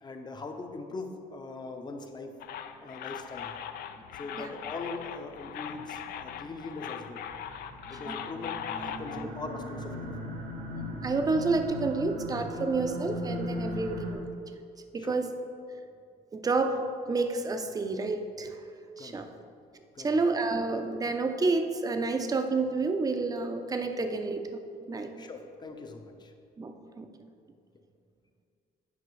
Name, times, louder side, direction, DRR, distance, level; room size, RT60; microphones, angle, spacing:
voice 1, 0.0-2.3 2.8-3.5 4.1-7.3 7.9-10.2 15.0-15.2 19.0-19.3 19.9-20.2 25.2-26.3, left 3 dB, 25° left, 5 dB, 0.7 m, -41 dB
sound 1, 2.4-9.3, left 9 dB, 65° left, 0.4 m, -40 dB
sound 2, 7.3-14.1, left 1 dB, 85° right, 1.5 m, -38 dB
voice 2, 10.7-14.2 14.9-15.3 16.3-18.6 19.0-19.3 20.0-25.2 26.6-27.1, right 3 dB, 20° right, 7 dB, 0.5 m, -29 dB
9.3 x 5.2 x 3.2 m, 2.4 s
cardioid pair, 110°, 17 cm